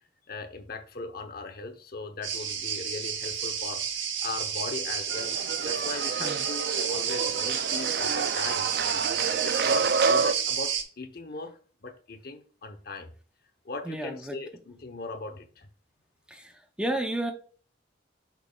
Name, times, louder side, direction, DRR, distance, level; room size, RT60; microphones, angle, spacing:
voice 1, 0.3-3.8 4.2-5.3 5.6-8.7 9.4-13.1 13.6-15.7, left 3 dB, 50° left, 0.9 m, -39 dB
sound 1, 2.2-10.8, right 7 dB, 75° right, 1.1 m, -30 dB
sound 2, 5.1-10.3, right 5 dB, 55° right, 0.3 m, -29 dB
voice 2, 13.8-14.3 16.3-17.3, right 1 dB, 5° right, 0.6 m, -32 dB
8.6 x 6.0 x 2.3 m
head